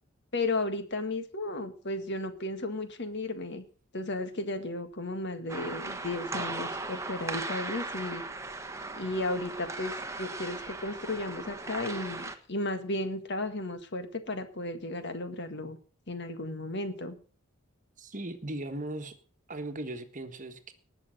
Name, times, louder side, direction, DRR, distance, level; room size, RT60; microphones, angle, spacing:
voice 1, 0.3-3.6 3.9-8.2 9.0-15.8 16.1-17.2, left 2 dB, 50° left, 9 dB, 1.8 m, -34 dB
sound 1, 5.5-12.4, right 3 dB, 15° right, 1.2 m, -38 dB
voice 2, 18.0-19.2 19.5-20.7, right 1 dB, 35° right, 7 dB, 1.4 m, -38 dB
19.5 x 6.9 x 6.4 m, 0.39 s
head